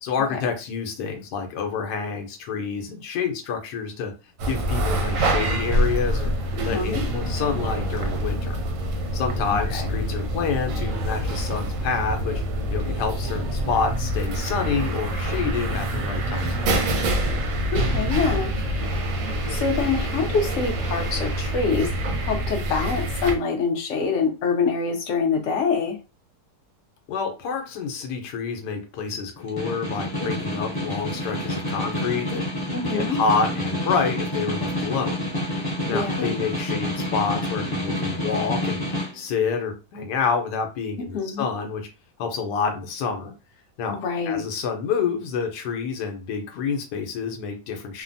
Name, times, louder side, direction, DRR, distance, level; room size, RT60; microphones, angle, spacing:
voice 1, 0.0-4.1 4.5-6.3 6.6-8.6 9.1-12.4 12.7-16.9 27.1-35.2 35.9-38.8 39.1-41.8 42.2-43.3 43.8-44.0 44.3-48.0, left 5 dB, 90° left, 1.2 m, -28 dB
sound 1, 4.4-23.4, right 1 dB, 65° right, 0.8 m, -26 dB
voice 2, 6.6-7.0 9.7-9.9 17.7-18.6 19.3-21.9 22.2-26.0 32.7-33.2 35.9-36.4 41.1-41.5 43.9-44.4, left 5 dB, 60° left, 0.9 m, -25 dB
Snare drum, 29.4-39.1, left 1 dB, 30° left, 0.4 m, -28 dB
3.2 x 2.1 x 2.5 m
omnidirectional pair, 1.7 m